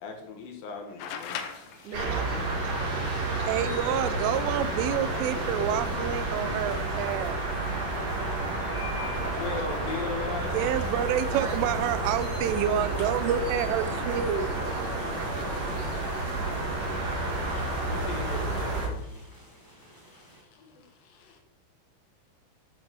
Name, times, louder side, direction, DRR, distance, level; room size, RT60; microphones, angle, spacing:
voice 1, 0.0-2.2 8.2-8.3 9.3-10.5 17.9-19.2 19.7-21.4, left 5 dB, 65° left, 3 dB, 2.4 m, -42 dB
sound 1, 1.0-2.5 4.4-4.5 5.7-6.1, left 8 dB, 80° left, 2.2 m, -39 dB
sound 2, 1.2-20.4, left 1 dB, 10° left, 1.4 m, -51 dB
voice 2, 1.8-4.9 9.5-9.7 11.3-13.5 13.8-16.9, right 4 dB, 70° right, 4 dB, 2.8 m, -44 dB
sound 3, 1.9-18.9, right 2 dB, 50° right, 2.1 m, -30 dB
voice 3, 3.5-7.4 10.5-14.5, right 9 dB, 90° right, 12 dB, 3.3 m, -28 dB
8.3 x 7.1 x 6.1 m, 0.85 s
omnidirectional pair, 5.5 m